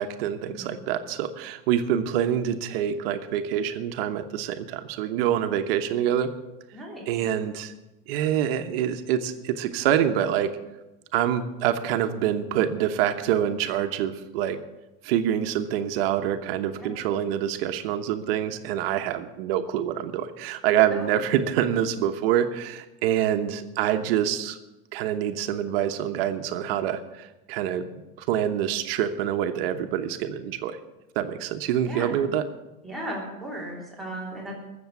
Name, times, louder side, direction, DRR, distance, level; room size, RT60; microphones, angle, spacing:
voice 1, 0.0-6.3 7.1-7.7 8.1-10.5 11.1-14.6 15.0-24.6 24.9-27.9 28.2-30.8 31.1-32.4, right 10 dB, 80° right, 8 dB, 1.1 m, -26 dB
voice 2, 6.7-7.0 16.7-16.9 20.9-21.1 31.8-32.1 32.8-34.5, right 1 dB, ahead, -3 dB, 3.1 m, -36 dB
14.5 x 7.2 x 8.3 m, 1.0 s
cardioid pair, 160°, 29 cm